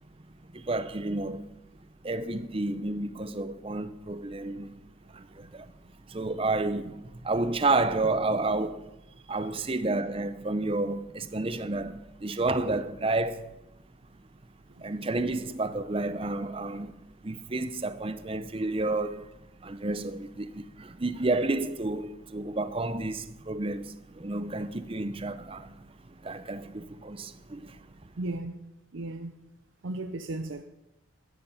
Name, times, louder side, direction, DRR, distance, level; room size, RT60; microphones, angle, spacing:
voice 1, 0.5-1.5 2.0-4.7 5.1-5.7 6.1-8.9 9.3-13.5 14.8-19.3 19.6-25.9 26.2-27.9, right 2 dB, 25° right, 0.6 m, -30 dB
voice 2, 28.2-29.3 29.8-30.6, right 2 dB, 70° right, 0.6 m, -36 dB
13.0 x 9.5 x 5.7 m
head